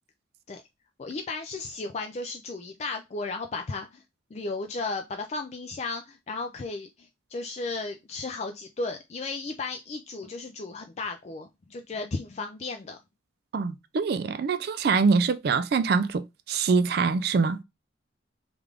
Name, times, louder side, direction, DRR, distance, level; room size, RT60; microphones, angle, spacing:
voice 1, 1.0-4.0 4.3-13.0, left 3 dB, 35° left, 0.3 m, -34 dB
voice 2, 13.5-17.6, right 4 dB, 55° right, 0.3 m, -24 dB
3.5 x 2.4 x 3.2 m
head